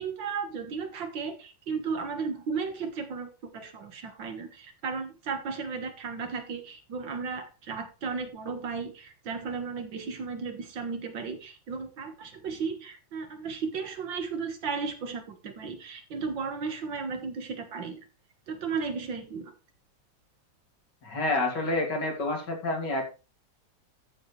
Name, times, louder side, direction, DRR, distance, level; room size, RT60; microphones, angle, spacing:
voice 1, 0.0-18.1 18.5-19.5, right 5 dB, 80° right, 7 dB, 2.3 m, -35 dB
voice 2, 21.0-23.1, left 2 dB, 65° left, 2 dB, 3.2 m, -28 dB
13.5 x 7.4 x 3.3 m, 0.30 s
omnidirectional pair, 2.0 m